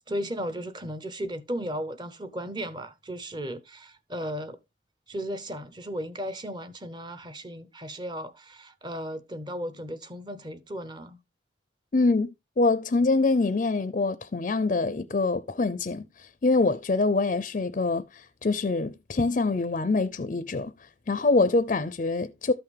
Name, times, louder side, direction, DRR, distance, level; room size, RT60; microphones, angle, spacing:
voice 1, 0.1-4.6 5.1-11.2, equal, 25° right, 0.8 m, -35 dB
voice 2, 11.9-12.3 12.6-22.5, left 3 dB, 40° left, 0.4 m, -25 dB
13.0 x 5.7 x 3.3 m
head